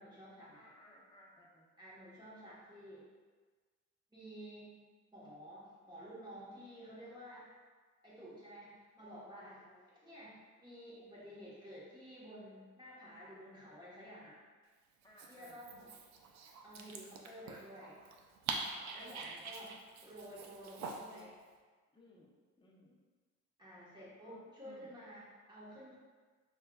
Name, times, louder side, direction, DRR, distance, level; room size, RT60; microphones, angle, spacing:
voice 1, 0.0-0.7 1.8-3.1 4.1-4.7 5.1-7.5 8.0-9.6 10.0-14.4 15.3-15.9 16.6-18.0 18.9-21.4 23.6-26.0, equal, 15° right, -9 dB, 1.1 m, -52 dB
voice 2, 0.5-1.7 9.4-9.9 15.0-15.6 18.4-19.5 21.9-22.9 23.7-24.9, left 1 dB, 15° left, -3 dB, 0.7 m, -61 dB
Dog, 15.0-21.2, right 4 dB, 65° right, 0.5 m, -45 dB
5.3 x 2.3 x 2.3 m, 1.4 s
cardioid pair, 90°, 30 cm